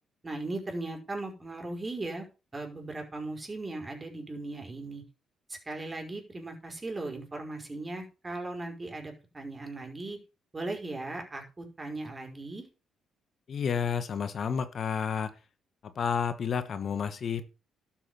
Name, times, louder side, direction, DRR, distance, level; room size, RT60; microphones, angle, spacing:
voice 1, 0.2-2.3 2.5-5.0 5.5-10.2 10.5-12.6, right 2 dB, 25° right, 2 dB, 5.1 m, -38 dB
voice 2, 13.5-15.3 16.0-17.5, left 7 dB, 50° left, 11 dB, 1.2 m, -30 dB
12.5 x 7.4 x 5.6 m, 0.32 s
cardioid pair, 90°, 0 cm